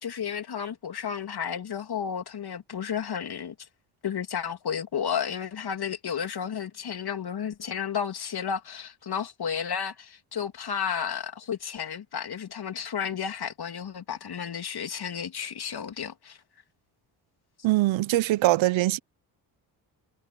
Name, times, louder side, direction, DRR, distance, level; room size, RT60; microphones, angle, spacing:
voice 1, 0.0-3.5 4.0-16.4, left 7 dB, 50° left, 3.2 m, -32 dB
voice 2, 17.6-19.0, right 17 dB, 75° right, 1.1 m, -22 dB
supercardioid pair, 55°, 47 cm